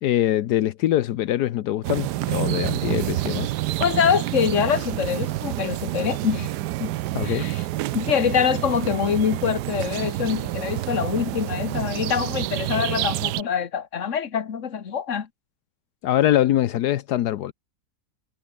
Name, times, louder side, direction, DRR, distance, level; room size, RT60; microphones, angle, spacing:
voice 1, 0.0-3.5 7.1-7.5 16.0-17.5, left 12 dB, 80° left, 1.3 m, -23 dB
sound 1, 1.8-13.4, right 16 dB, 90° right, 1.2 m, -28 dB
voice 2, 3.8-6.5 6.8-6.9 7.2-7.6 7.9-15.3, left 7 dB, 50° left, 1.7 m, -24 dB
omnidirectional pair, 1.7 m